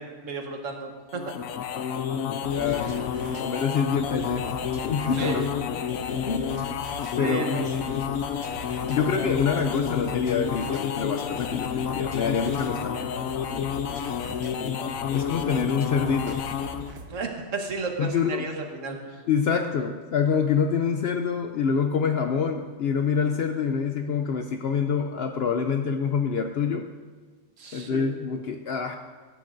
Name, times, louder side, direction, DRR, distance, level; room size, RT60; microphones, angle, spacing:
voice 1, 0.0-1.3 2.6-2.9 5.2-5.4 7.1-7.6 17.1-19.2 27.6-28.1, right 4 dB, 70° right, 3 dB, 1.5 m, -33 dB
sound 1, 1.1-16.9, left 8 dB, 85° left, 1.1 m, -30 dB
sound 2, 2.4-17.2, right 2 dB, 90° right, 1.4 m, -42 dB
voice 2, 2.5-3.1 3.4-4.6 4.9-5.5 6.3-6.6 7.2-7.7 8.9-13.1 15.1-16.4 18.0-18.5 19.3-26.9 27.7-29.0, left 6 dB, 65° left, 6 dB, 0.7 m, -26 dB
16.0 x 10.5 x 2.6 m, 1.4 s
omnidirectional pair, 1.4 m